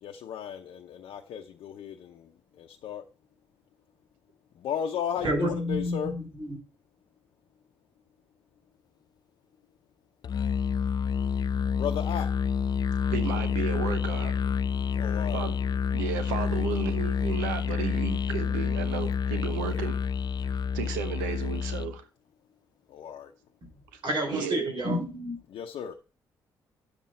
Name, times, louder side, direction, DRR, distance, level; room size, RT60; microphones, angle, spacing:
voice 1, 0.0-3.0 4.6-6.1 11.7-12.3 14.9-15.5 19.6-19.9 22.9-23.3 25.5-25.9, left 8 dB, 70° left, 0.8 m, -35 dB
voice 2, 5.2-6.5 23.6-23.7 24.0-25.4, equal, 55° right, 3.7 m, -29 dB
Musical instrument, 10.2-22.0, left 6 dB, 45° left, 0.4 m, -28 dB
voice 3, 13.1-14.3 15.3-15.6 15.9-20.0 20.4-22.0 24.3-24.7, right 8 dB, 90° right, 0.9 m, -33 dB
9.1 x 7.5 x 4.2 m
hypercardioid pair, 45°, 10 cm